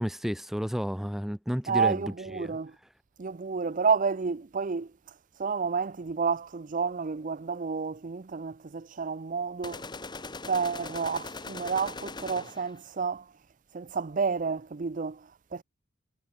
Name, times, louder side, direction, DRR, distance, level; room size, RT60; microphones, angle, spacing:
voice 1, 0.0-2.5, equal, ahead, 0.8 m, -32 dB
voice 2, 1.7-2.8 3.2-4.9 5.4-9.9 10.5-13.3 13.7-15.6, right 5 dB, 40° right, 0.5 m, -30 dB
sound 1, 9.6-12.8, left 3 dB, 20° left, 1.1 m, -40 dB
head